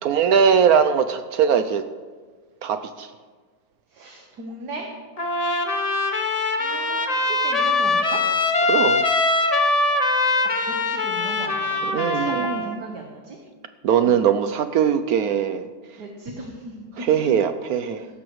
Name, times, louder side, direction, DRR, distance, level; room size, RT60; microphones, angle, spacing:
voice 1, 0.0-1.8 2.6-3.1 8.7-9.0 11.9-12.8 13.8-15.7 17.0-18.0, right 7 dB, 75° right, 9 dB, 0.8 m, -20 dB
voice 2, 3.9-4.9 6.2-8.2 10.6-13.4 14.0-14.2 16.0-17.3 18.0-18.1, right 2 dB, 60° right, 1 dB, 1.8 m, -37 dB
Trumpet, 5.2-12.8, left 2 dB, 55° left, 0.4 m, -22 dB
17.0 x 13.0 x 3.1 m, 1.5 s
omnidirectional pair, 2.1 m